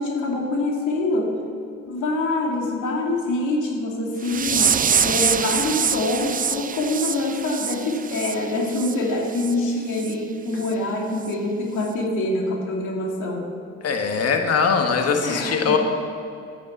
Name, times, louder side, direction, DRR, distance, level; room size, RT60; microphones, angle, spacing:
voice 1, 0.0-1.3 1.9-13.5 15.2-15.8, left 2 dB, 80° left, -1 dB, 2.5 m, -25 dB
sound 1, 4.2-8.9 9.3-9.5 10.0-10.1 10.6-10.7 11.2-11.3, right 7 dB, 30° right, 0.5 m, -24 dB
voice 2, 13.8-15.8, left 5 dB, 55° left, 4 dB, 1.6 m, -21 dB
9.9 x 9.5 x 7.8 m, 2.5 s
supercardioid pair, 75°, 30 cm